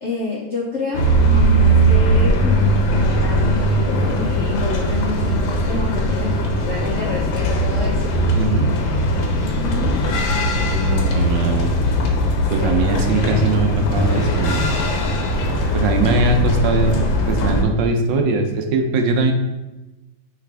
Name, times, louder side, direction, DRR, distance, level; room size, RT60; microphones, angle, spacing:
voice 1, 0.0-2.6 2.9-8.1 9.4-9.9 12.5-13.0 13.3-13.5 15.7-16.2, left 3 dB, 65° left, -4 dB, 0.7 m, -29 dB
sound 1, 0.9-17.6, equal, 80° left, 1.4 m, -19 dB
voice 2, 8.3-8.7 10.6-11.7 12.5-14.7 15.7-19.3, right 3 dB, 75° right, 4 dB, 1.2 m, -20 dB
4.8 x 3.3 x 3.3 m, 1.0 s
omnidirectional pair, 2.1 m